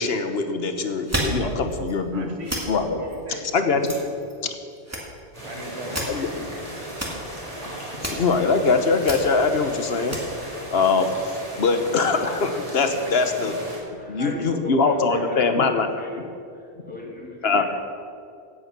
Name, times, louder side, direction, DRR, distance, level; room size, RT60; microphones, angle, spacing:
voice 1, 0.0-2.3 2.7-3.0 3.5-3.9 4.4-4.5 6.1-6.3 7.6-10.2 10.7-13.5 14.1-15.9 17.4-17.6, left 4 dB, 65° left, 7 dB, 1.3 m, -22 dB
sound 1, 1.0-1.4 1.7-1.9 2.4-2.6 3.1-3.2 3.8-4.5 4.8-5.4 5.7-6.2 6.9-7.2 7.7-7.8 7.9-8.5 9.0-9.2 9.9-10.2, right 1 dB, 15° right, 2.3 m, -30 dB
voice 2, 1.4-1.7 2.1-4.4 5.4-6.6, right 1 dB, 70° right, 2 dB, 2.0 m, -38 dB
sound 2, 5.3-13.8, right 1 dB, 30° right, 3.9 m, -36 dB
voice 3, 14.0-16.3 16.5-17.6, left 1 dB, 10° left, -3 dB, 2.5 m, -36 dB
16.5 x 8.8 x 6.0 m, 2.4 s
omnidirectional pair, 1.1 m